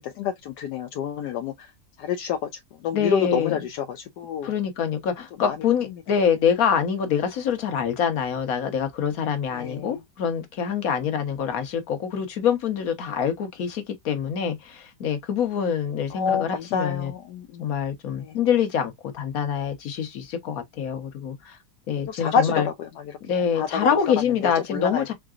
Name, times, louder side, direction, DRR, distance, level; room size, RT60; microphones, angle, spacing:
voice 1, 0.0-1.7 2.0-4.5 5.4-5.6 9.5-10.0 16.1-17.7 18.2-18.4 22.1-22.9 23.5-23.9 24.7-25.0, left 7 dB, 80° left, 1.2 m, -28 dB
voice 2, 2.9-3.6 4.4-17.1 17.6-21.6 21.9-22.7 23.2-25.1, left 7 dB, 60° left, 1.5 m, -25 dB
3.9 x 3.6 x 2.4 m
omnidirectional pair, 1.8 m